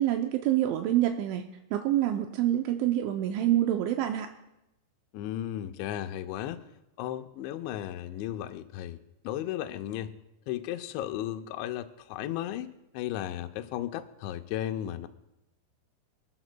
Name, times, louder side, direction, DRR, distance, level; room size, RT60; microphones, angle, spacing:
voice 1, 0.0-4.3, right 12 dB, 85° right, 5 dB, 3.0 m, -27 dB
voice 2, 5.1-6.7 7.0-9.0 9.2-10.1 10.5-15.1, left 12 dB, 80° left, 8 dB, 2.9 m, -35 dB
22.5 x 14.0 x 2.2 m, 0.91 s
omnidirectional pair, 5.3 m